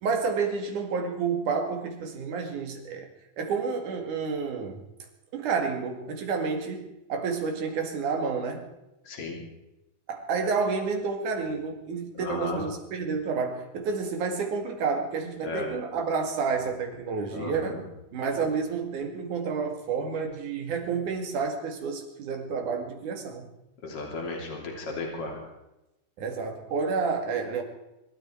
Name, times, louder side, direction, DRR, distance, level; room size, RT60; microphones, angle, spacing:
voice 1, 0.0-3.1 3.4-4.8 5.3-8.7 10.1-17.8 18.1-23.5 26.2-27.6, right 5 dB, 80° right, 4 dB, 3.6 m, -30 dB
voice 2, 9.0-9.4 12.2-12.6 15.4-15.7 17.3-17.8 18.4-18.5 23.8-25.4, left 3 dB, 50° left, 0 dB, 4.1 m, -34 dB
24.5 x 13.0 x 4.6 m, 0.94 s
omnidirectional pair, 3.5 m